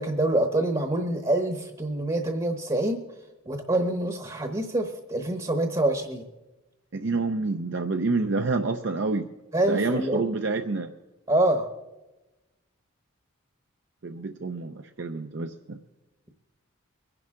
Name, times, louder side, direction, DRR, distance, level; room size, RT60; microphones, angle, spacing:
voice 1, 0.0-3.0 3.5-6.2 9.5-10.3 11.3-11.7, right 1 dB, 25° right, 6 dB, 1.0 m, -26 dB
voice 2, 6.9-9.3 9.7-10.9 14.0-15.8, right 3 dB, 60° right, 5 dB, 0.6 m, -28 dB
23.5 x 10.5 x 3.7 m, 1.1 s
head